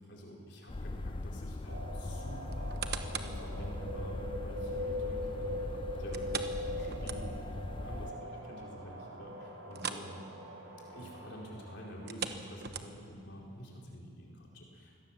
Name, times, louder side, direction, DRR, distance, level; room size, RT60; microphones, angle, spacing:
voice 1, 0.0-10.2 10.9-15.0, equal, 55° left, -1 dB, 4.2 m, -48 dB
sound 1, 0.7-8.1, left 2 dB, 25° left, 0.4 m, -40 dB
sound 2, 1.7-12.9, equal, 70° right, 4.9 m, -42 dB
sound 3, 2.5-3.4 3.9-4.0 6.1-7.6 7.9-8.0 8.5-8.6 9.7-10.1 10.4-10.6 11.9-13.2 13.8-13.9, right 6 dB, 50° right, 1.1 m, -40 dB
24.0 x 17.5 x 7.4 m, 2.4 s
head